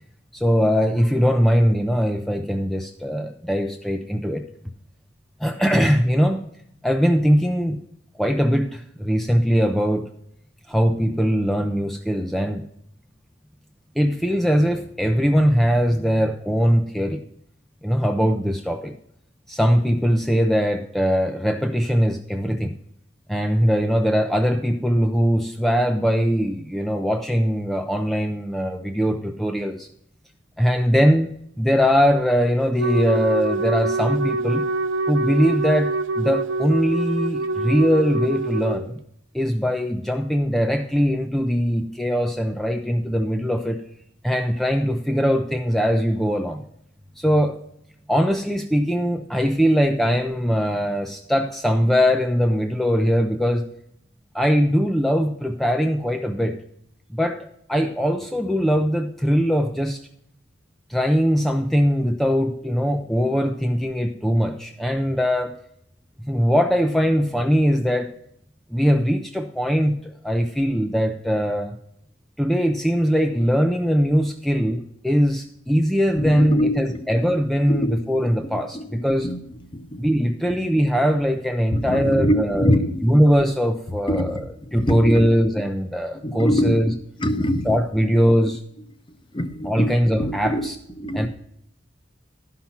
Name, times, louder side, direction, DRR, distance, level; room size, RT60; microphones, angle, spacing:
voice 1, 0.3-4.4 5.4-6.4 6.8-7.8 8.2-10.1 10.7-12.6 14.0-17.2 17.8-18.9 19.5-22.7 23.3-29.9 30.6-31.3 31.6-34.6 35.1-39.0 39.3-43.8 44.2-46.6 47.2-47.6 48.1-53.7 54.3-56.6 57.1-60.0 60.9-65.6 66.3-68.1 68.7-71.7 72.4-79.3 80.0-82.7 83.0-86.9 87.6-88.6 89.6-90.8 91.1-91.3, equal, ahead, 4 dB, 0.5 m, -21 dB
Wind instrument woodwind instrument, 32.8-38.8, right 2 dB, 70° right, 0.5 m, -25 dB
voice 2, 76.2-77.0 77.7-78.9 79.2-79.4 79.7-79.9 81.7-83.2 84.1-84.4 84.8-85.3 86.2-86.7 87.2-87.8 89.3-89.9 90.2-90.7 91.0-91.3, equal, 25° left, 9 dB, 0.8 m, -24 dB
11.5 x 5.7 x 5.7 m, 0.73 s
head